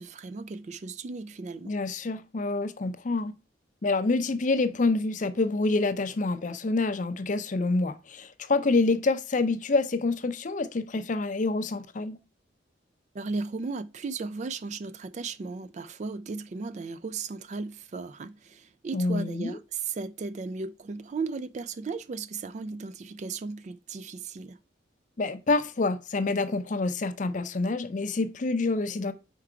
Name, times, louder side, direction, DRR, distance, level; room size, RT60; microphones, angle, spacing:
voice 1, 0.0-1.8 13.1-24.6, right 4 dB, 40° right, 0.3 m, -36 dB
voice 2, 1.7-3.3 3.8-12.2 18.9-19.6 25.2-29.1, left 3 dB, 40° left, 0.5 m, -27 dB
4.7 x 4.5 x 4.9 m
head